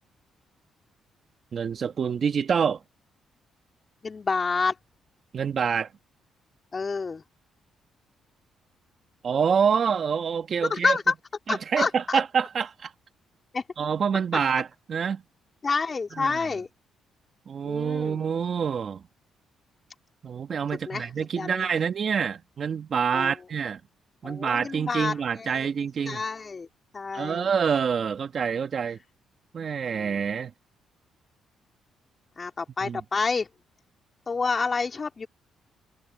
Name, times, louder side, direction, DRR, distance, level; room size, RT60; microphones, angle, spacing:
voice 1, 1.5-2.8 5.3-5.9 9.2-11.0 11.5-12.9 13.8-15.2 16.1-16.4 17.5-19.0 20.2-23.8 24.2-26.2 27.1-29.0 29.5-30.5 32.8-33.0, right 6 dB, 50° right, 1.5 m, -26 dB
voice 2, 4.0-4.7 6.7-7.2 10.6-11.1 11.5-12.2 13.5-13.6 15.6-16.7 17.6-18.2 20.9-21.1 21.4-21.7 23.1-23.3 24.2-25.7 26.0-26.7 26.9-27.5 30.0-30.2 32.4-33.5 34.3-35.3, left 4 dB, 35° left, 3.4 m, -28 dB
cardioid pair, 90°, 0 cm